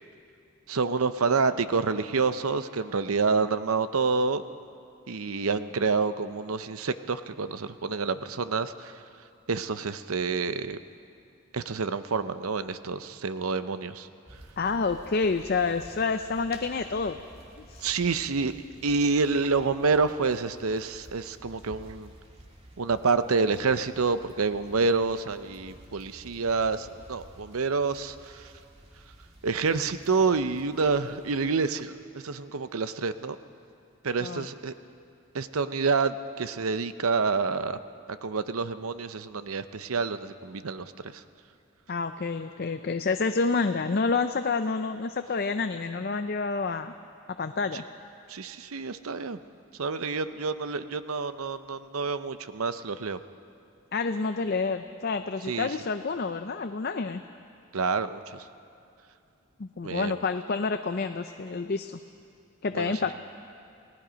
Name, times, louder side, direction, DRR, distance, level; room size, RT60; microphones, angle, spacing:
voice 1, 0.7-4.4 5.1-8.9 9.5-10.8 11.5-14.1 17.8-18.5 18.8-22.1 22.8-28.5 29.4-31.9 32.2-33.4 34.0-34.7 35.3-37.8 38.1-41.2 48.3-49.4 49.8-53.2 55.5-55.7 57.7-58.4 59.8-60.1 62.7-63.0, right 4 dB, 85° right, 12 dB, 0.7 m, -28 dB
sound 1, 14.3-31.8, right 1 dB, 30° right, 2.0 m, -52 dB
voice 2, 14.6-17.2 17.6-17.9 34.2-34.5 41.9-46.9 47.4-47.8 53.9-57.2 59.6-62.0 62.6-63.1, left 4 dB, 45° left, 8 dB, 0.5 m, -28 dB
29.5 x 18.0 x 5.2 m, 2.5 s
head